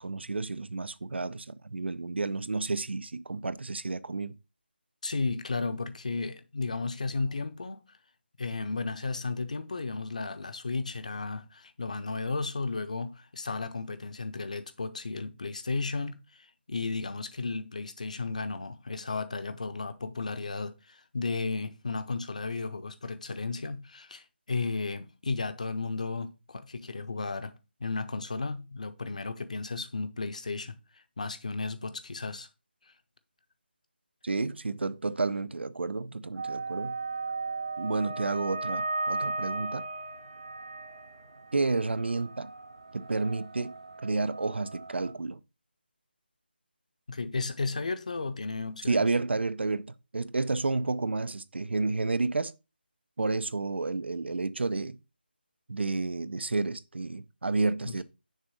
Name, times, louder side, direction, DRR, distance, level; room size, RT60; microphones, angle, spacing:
voice 1, 0.0-4.3 34.2-36.9 37.8-39.8 41.5-42.5 42.9-43.7 44.0-45.4 48.9-52.5 53.2-55.0 55.7-58.0, right 3 dB, 85° right, 0.6 m, -30 dB
voice 2, 5.0-7.8 8.4-32.5 47.1-49.0 57.8-58.0, left 3 dB, 40° left, 0.7 m, -34 dB
sound 1, 36.4-45.1, right 3 dB, 30° right, 0.7 m, -36 dB
6.6 x 3.6 x 6.2 m
figure-of-eight pair, 175°, 6 cm